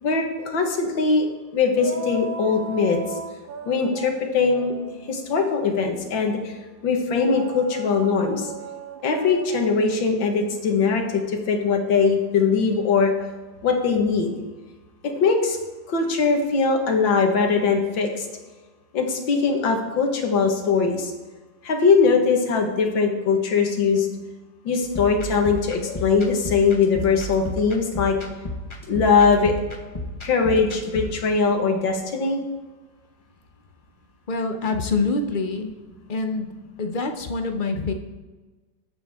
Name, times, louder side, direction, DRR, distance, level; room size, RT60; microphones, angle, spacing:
voice 1, 0.0-1.3 1.5-3.0 3.7-4.7 5.1-6.5 6.8-8.5 9.0-11.2 11.5-13.1 13.6-14.3 15.0-15.6 15.9-18.3 18.9-21.1 21.6-24.1 24.7-28.2 28.9-29.5 30.2-32.4, left 5 dB, 80° left, 3 dB, 2.2 m, -21 dB
sound 1, 1.8-6.4 7.3-12.0, right 4 dB, 65° right, 0.5 m, -38 dB
sound 2, 24.8-31.2, left 1 dB, 20° left, 1.1 m, -33 dB
voice 2, 34.3-35.7 36.1-36.5 36.8-37.9, left 3 dB, 60° left, 6 dB, 0.5 m, -25 dB
20.0 x 8.3 x 3.6 m, 1.3 s
omnidirectional pair, 2.1 m